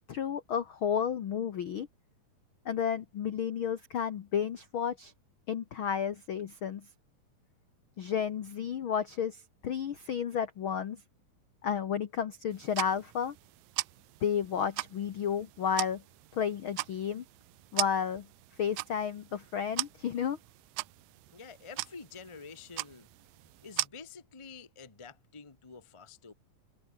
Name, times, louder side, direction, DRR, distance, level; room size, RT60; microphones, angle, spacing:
voice 1, 0.1-1.9 2.6-5.1 5.5-6.9 8.0-11.0 11.6-13.4 14.2-16.0 16.3-17.2 17.7-18.3 18.6-20.4, left 8 dB, 80° left, 1.1 m, -32 dB
sound 1, 12.5-23.9, right 22 dB, 80° right, 2.1 m, -40 dB
voice 2, 21.3-23.1 23.6-26.3, left 5 dB, 50° left, 0.3 m, -48 dB
omnidirectional pair, 4.1 m